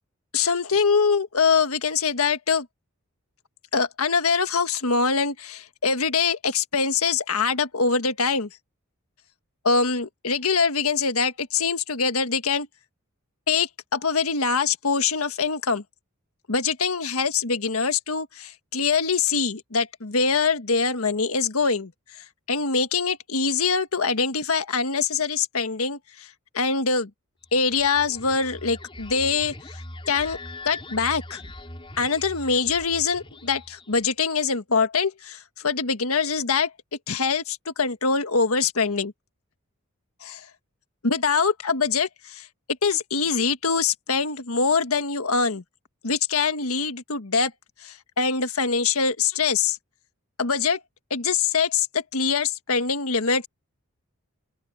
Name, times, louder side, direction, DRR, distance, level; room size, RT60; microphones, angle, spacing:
voice 1, 0.3-2.7 3.7-8.5 9.6-12.7 13.5-15.8 16.5-21.9 22.2-26.3 26.5-27.1 27.5-29.8 30.1-30.4 30.6-31.4 32.0-36.7 37.1-39.1 40.2-40.4 41.0-42.5 42.8-45.6 46.0-47.5 47.8-49.8 50.4-50.8 51.1-53.5, left 5 dB, 90° left, 1.6 m, -24 dB
sound 1, 27.4-34.1, left 2 dB, 25° left, 4.8 m, -41 dB
open air
head